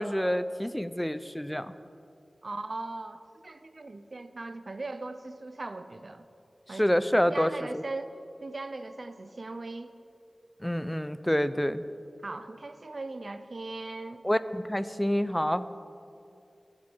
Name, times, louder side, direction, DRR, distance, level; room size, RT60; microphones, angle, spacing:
voice 1, 0.0-1.7 6.8-7.8 10.6-11.8 14.2-15.7, equal, 10° left, 13 dB, 0.5 m, -27 dB
voice 2, 2.4-6.3 6.7-6.9 7.3-8.1 8.4-10.0 12.2-14.2, right 2 dB, 55° right, 10 dB, 0.6 m, -39 dB
21.5 x 7.5 x 4.5 m, 2.6 s
wide cardioid pair, 55°, 0 cm